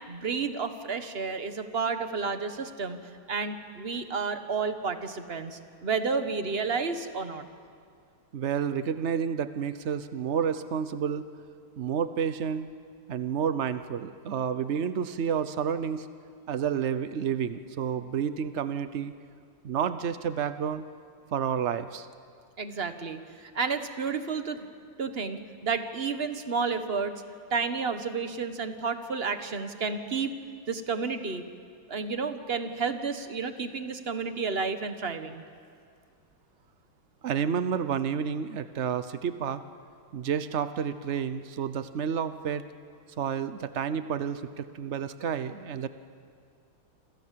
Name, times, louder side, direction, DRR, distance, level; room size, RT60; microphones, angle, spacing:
voice 1, 0.1-3.0 3.3-7.4 22.6-24.7 25.0-27.1 27.5-30.3 30.7-31.4 31.9-35.4, right 5 dB, 35° right, 9 dB, 1.2 m, -31 dB
voice 2, 8.3-11.3 11.8-12.7 13.1-16.1 16.5-19.1 19.6-20.8 21.3-22.1 37.2-39.6 40.1-42.7 43.2-45.9, right 7 dB, 90° right, 12 dB, 0.6 m, -30 dB
27.5 x 27.0 x 7.6 m, 2.2 s
omnidirectional pair, 2.3 m